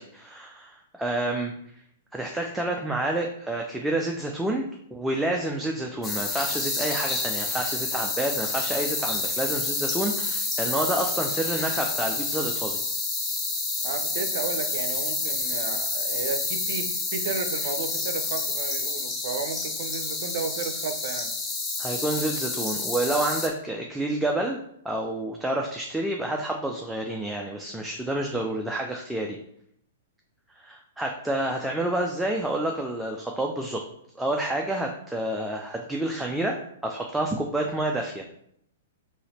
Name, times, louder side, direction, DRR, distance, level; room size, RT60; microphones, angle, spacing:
voice 1, 0.0-1.5 2.1-12.8 21.8-24.6 24.8-29.4 30.5-33.8 34.2-38.2, right 1 dB, 5° right, 0 dB, 0.4 m, -29 dB
sound 1, 6.0-23.5, left 3 dB, 20° left, 0.8 m, -29 dB
voice 2, 13.8-21.3, right 5 dB, 55° right, 8 dB, 0.6 m, -33 dB
3.9 x 2.9 x 4.3 m, 0.71 s
figure-of-eight pair, 110°, 0 cm